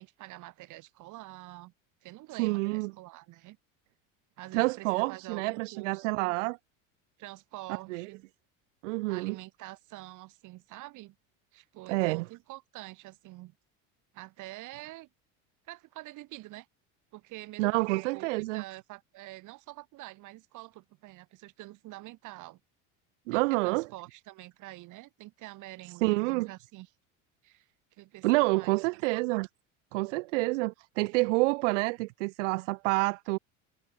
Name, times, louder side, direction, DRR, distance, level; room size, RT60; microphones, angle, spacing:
voice 1, 0.0-1.7 2.0-3.6 4.4-6.2 7.2-8.2 9.1-11.2 11.5-13.5 14.1-15.1 15.7-16.7 17.1-22.6 23.3-26.9 27.4-28.8, right 19 dB, 55° right, 4.7 m, -46 dB
voice 2, 2.4-2.9 4.5-6.6 7.9-8.1 8.8-9.4 11.9-12.3 17.6-18.6 23.3-23.9 26.0-26.5 28.2-29.5 29.9-33.4, right 24 dB, 85° right, 1.6 m, -28 dB
supercardioid pair, 130°, 36 cm